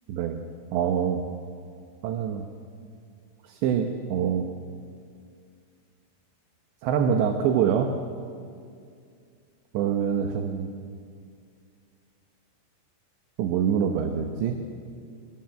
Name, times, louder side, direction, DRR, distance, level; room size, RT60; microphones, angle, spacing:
voice 1, 0.1-0.4 0.7-1.2 2.0-2.5 3.4-4.5 6.8-7.9 9.7-10.7 13.4-14.6, right 8 dB, 70° right, 5 dB, 3.2 m, -25 dB
29.0 x 24.5 x 7.8 m, 2.3 s
omnidirectional pair, 5.9 m